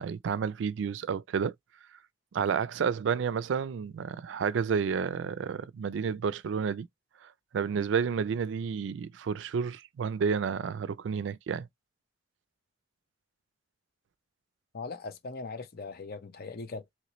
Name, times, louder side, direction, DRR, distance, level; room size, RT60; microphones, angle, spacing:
voice 1, 0.0-1.5 2.3-6.9 7.2-11.7, right 6 dB, 70° right, 0.3 m, -30 dB
voice 2, 14.7-17.0, left 4 dB, 55° left, 0.6 m, -40 dB
3.1 x 3.0 x 3.0 m
head